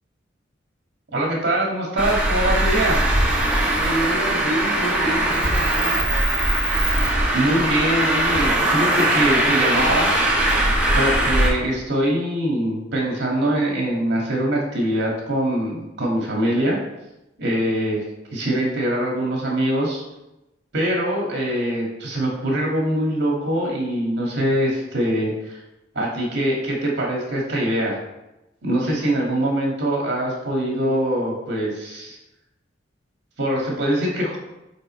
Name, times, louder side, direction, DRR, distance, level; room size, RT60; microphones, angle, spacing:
voice 1, 1.1-3.1 7.3-10.1 11.0-16.8 17.4-18.0 18.3-20.0 20.7-25.6 25.9-28.0 28.6-32.2 33.4-34.4, right 1 dB, 60° right, -2 dB, 1.9 m, -23 dB
Traffic noise roadway noise, 2.0-11.5, right 1 dB, 5° right, 1.3 m, -20 dB
voice 2, 3.8-6.2, right 1 dB, 70° left, -4 dB, 2.0 m, -28 dB
5.3 x 5.2 x 4.3 m, 0.96 s
head